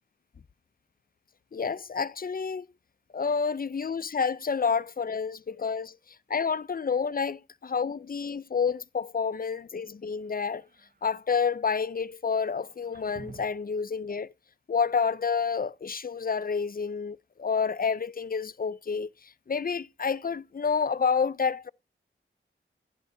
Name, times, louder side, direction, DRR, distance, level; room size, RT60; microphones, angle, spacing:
voice 1, 1.5-2.7 3.1-6.0 6.3-10.6 11.0-14.3 14.7-21.7, left 5 dB, 45° left, 0.4 m, -29 dB
sound 1, 10.2-11.1 12.5-13.8, right 4 dB, 40° right, 0.8 m, -50 dB
12.0 x 10.5 x 2.6 m
wide cardioid pair, 55°, 21 cm